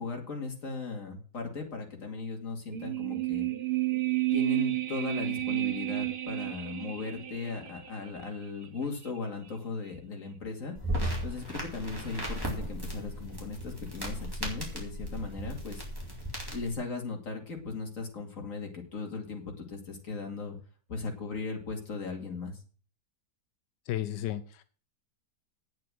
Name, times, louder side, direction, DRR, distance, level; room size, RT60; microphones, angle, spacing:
voice 1, 0.0-3.5 4.3-10.8 11.2-15.8 16.5-20.6 20.9-22.6, left 4 dB, 50° left, 2 dB, 2.8 m, -37 dB
sound 1, 2.7-8.0 8.2-8.3, right 17 dB, 45° right, 0.7 m, -31 dB
sound 2, 10.7-16.7, right 1 dB, 10° right, 3.7 m, -36 dB
voice 2, 23.9-24.6, left 12 dB, 90° left, 12 dB, 1.4 m, -33 dB
9.3 x 7.6 x 7.6 m, 0.41 s
omnidirectional pair, 1.9 m